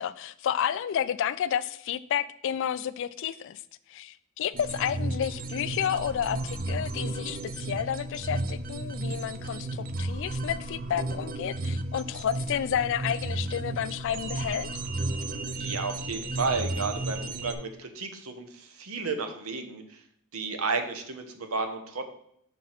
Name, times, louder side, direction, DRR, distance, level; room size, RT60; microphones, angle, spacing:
voice 1, 0.0-3.6 3.9-14.7, left 9 dB, 60° left, 15 dB, 0.3 m, -31 dB
sound 1, 4.5-17.6, right 2 dB, 45° right, 0.4 m, -33 dB
voice 2, 15.6-20.0 20.3-22.1, right 4 dB, 85° right, 6 dB, 0.9 m, -32 dB
6.1 x 4.5 x 4.0 m, 0.70 s
head